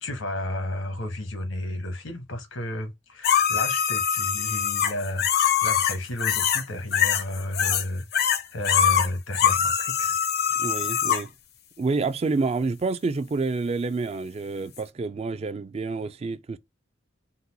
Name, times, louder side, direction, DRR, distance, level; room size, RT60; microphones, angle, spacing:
voice 1, 0.0-10.2, left 1 dB, 85° left, 1.1 m, -32 dB
sound 1, 3.2-6.6 6.9-7.8 8.1-11.2 14.8-14.9, left 8 dB, 55° left, 0.6 m, -23 dB
voice 2, 10.6-11.3 11.8-16.6, right 3 dB, 30° right, 0.3 m, -28 dB
4.0 x 2.2 x 4.0 m
head